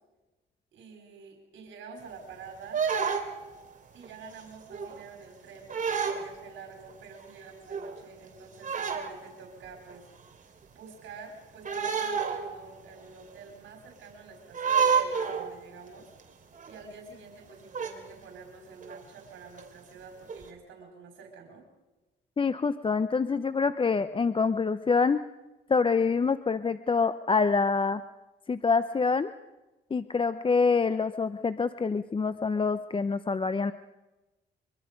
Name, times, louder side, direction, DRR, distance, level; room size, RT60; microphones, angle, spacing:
voice 1, 0.7-2.8 3.9-10.1 10.7-16.1 16.7-21.6, right 4 dB, 75° right, 3 dB, 4.5 m, -48 dB
sound 1, 2.7-3.5 4.0-4.3 4.7-5.1 5.7-6.3 6.9-7.0 7.2-7.3 7.7-8.0 8.6-9.2 9.9-10.0 11.6-12.7 13.0-13.1 14.5-15.6 16.2-16.3 16.5-16.8 17.7-17.9 18.8-19.0 19.6-19.7 20.3-20.5, right 6 dB, 40° right, 2.8 m, -29 dB
voice 2, 22.4-25.2 25.7-28.0 28.5-29.3 29.9-33.7, left 4 dB, 25° left, 13 dB, 0.7 m, -26 dB
24.0 x 24.0 x 5.2 m, 1.1 s
cardioid pair, 90°, 20 cm